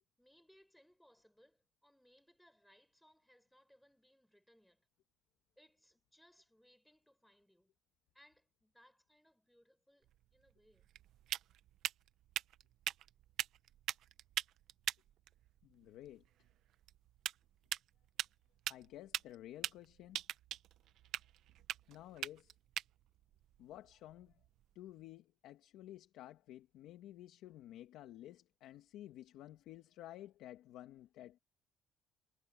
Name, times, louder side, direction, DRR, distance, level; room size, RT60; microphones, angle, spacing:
voice 1, 0.2-4.9 5.6-7.7 8.1-10.9, equal, ahead, 6.5 m, -68 dB
sound 1, 10.0-24.7, right 12 dB, 55° right, 0.9 m, -44 dB
voice 2, 15.6-16.2 18.7-20.2 21.9-22.6 23.6-24.4 24.8-31.4, left 13 dB, 65° left, 1.9 m, -53 dB
cardioid pair, 175°, 0 cm